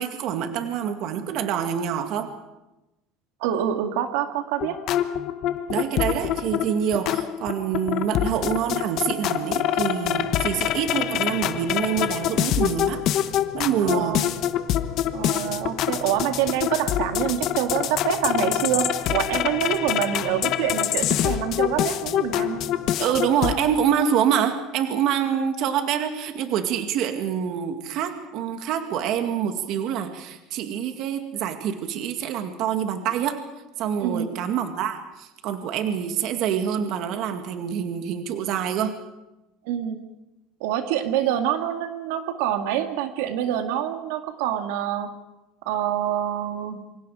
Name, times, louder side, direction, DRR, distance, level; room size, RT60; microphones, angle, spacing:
voice 1, 0.0-2.3 5.7-13.0 13.5-14.2 23.0-33.4 33.8-39.0, right 8 dB, 50° right, 6 dB, 2.1 m, -26 dB
voice 2, 3.4-4.8 13.8-14.4 15.1-22.8 34.0-34.4 39.6-40.0 40.6-45.2 45.7-46.9, right 10 dB, 80° right, 6 dB, 2.1 m, -26 dB
sound 1, 4.6-23.5, left 11 dB, 45° left, 1.1 m, -26 dB
sound 2, 10.0-23.0, left 5 dB, 70° left, 5.5 m, -43 dB
27.0 x 25.0 x 5.0 m, 0.98 s
cardioid pair, 165°, 0 cm